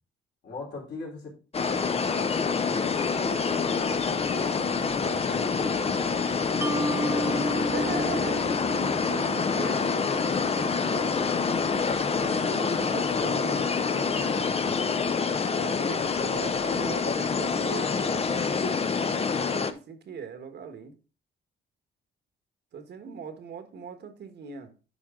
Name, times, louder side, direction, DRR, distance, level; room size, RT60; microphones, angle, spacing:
voice 1, 0.4-1.4 1.6-6.2 13.0-14.9, left 3 dB, 60° left, -2 dB, 3.7 m, -40 dB
sound 1, 1.5-19.7, left 5 dB, 30° left, 0.7 m, -26 dB
Mallet percussion, 6.6-9.9, right 2 dB, 10° right, 0.8 m, -33 dB
voice 2, 7.0-10.2 10.5-11.4 12.2-13.6 15.4-18.4 19.3-20.9 22.7-24.7, right 6 dB, 60° right, 8 dB, 1.3 m, -40 dB
10.5 x 4.6 x 3.6 m, 0.35 s
cardioid pair, 90°, 20 cm